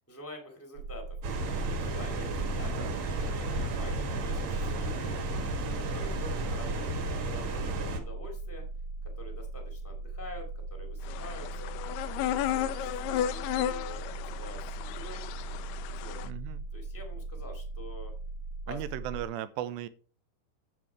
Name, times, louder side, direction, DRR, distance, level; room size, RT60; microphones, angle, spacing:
voice 1, 0.1-1.1 1.7-5.4 5.8-8.6 9.1-11.7 12.2-15.2 15.9-16.2 16.7-18.1 18.6-18.9, left 1 dB, 5° left, 2 dB, 1.0 m, -47 dB
sound 1, 0.8-19.3, right 3 dB, 70° right, 3.2 m, -39 dB
sound 2, 1.2-8.0, right 2 dB, 55° right, 2.3 m, -33 dB
voice 2, 2.6-3.0 6.5-6.6 16.2-16.6 18.7-19.9, right 12 dB, 85° right, 13 dB, 2.9 m, -37 dB
sound 3, 11.1-16.3, left 11 dB, 80° left, 2.5 m, -34 dB
9.6 x 7.2 x 4.7 m, 0.40 s
omnidirectional pair, 4.9 m